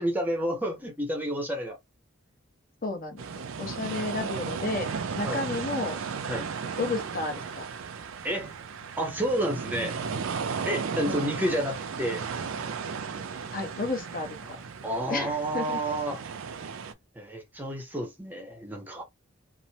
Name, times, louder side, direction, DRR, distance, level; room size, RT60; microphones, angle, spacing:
voice 1, 0.0-1.8 5.2-5.4 6.3-6.5 8.2-8.5 9.0-10.0 10.6-12.2 14.4-14.5 14.8-16.2 17.2-19.0, right 1 dB, 10° right, 0.6 m, -30 dB
voice 2, 2.8-3.2 3.6-4.9 5.2-6.0 6.8-7.7 11.1-11.3 13.5-14.6 15.1-15.8, left 3 dB, 45° left, 0.8 m, -32 dB
sound 1, 3.2-16.9, right 5 dB, 80° right, 0.5 m, -35 dB
3.0 x 2.1 x 2.7 m
head